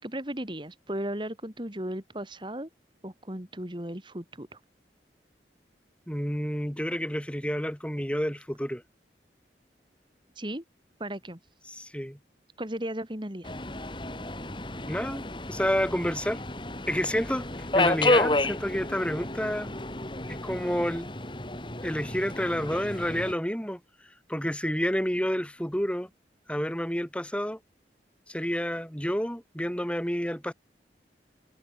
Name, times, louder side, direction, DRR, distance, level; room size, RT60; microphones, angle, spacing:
voice 1, 0.0-2.7 3.0-4.6 10.3-10.6 11.0-11.4 12.6-13.5, right 1 dB, 25° right, 3.4 m, -35 dB
voice 2, 6.1-8.8 11.7-12.2 14.9-15.2 15.5-16.4 16.9-17.5 17.7-19.7 20.3-21.1 21.8-23.8 24.3-26.1 26.5-27.6 28.3-30.5, equal, 5° left, 5.4 m, -29 dB
Subway metro underground, 13.4-23.3, left 2 dB, 25° left, 3.1 m, -31 dB
head